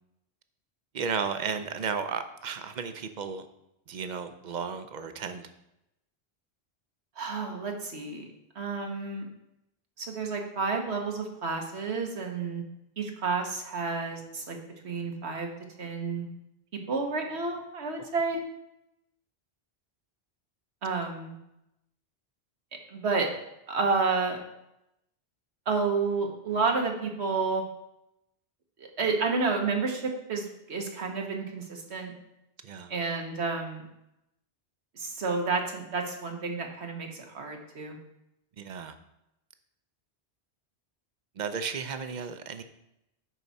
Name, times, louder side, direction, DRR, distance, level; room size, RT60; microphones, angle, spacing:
voice 1, 0.9-3.4 3.9-5.5 32.6-32.9 38.6-38.9 41.4-42.6, right 6 dB, 50° right, 9 dB, 0.7 m, -34 dB
voice 2, 7.2-8.3 8.5-9.3 10.0-12.6 13.0-14.6 14.8-15.5 15.8-16.3 16.9-18.4 20.8-21.3 22.9-23.3 23.7-24.4 25.7-27.6 28.8-32.1 32.9-33.8 35.0-38.0, right 4 dB, 80° right, 2 dB, 1.4 m, -30 dB
10.5 x 4.6 x 4.1 m, 0.86 s
omnidirectional pair, 1.1 m